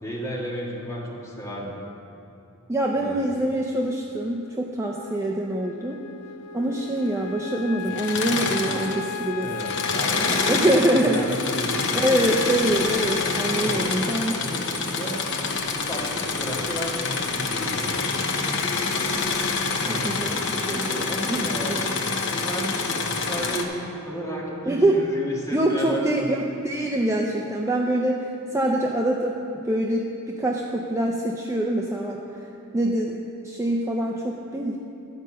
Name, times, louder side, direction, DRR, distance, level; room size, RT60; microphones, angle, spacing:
voice 1, 0.0-1.8 3.0-3.4 9.4-12.1 13.6-14.1 14.4-15.2 15.7-18.3 19.8-20.6 21.1-21.8 22.2-26.3, equal, 15° left, -5 dB, 1.7 m, -33 dB
voice 2, 2.7-6.0 6.5-9.6 10.5-11.2 11.9-14.4 19.9-22.1 24.7-25.0 25.5-32.2 32.7-33.2 33.4-34.8, right 1 dB, 15° right, -1 dB, 0.5 m, -25 dB
Wind instrument woodwind instrument, 5.0-13.5, left 5 dB, 80° left, 0.4 m, -37 dB
Engine / Mechanisms, 7.9-9.2 9.5-23.6, left 4 dB, 55° left, 0.9 m, -27 dB
12.0 x 5.3 x 7.6 m, 2.7 s
head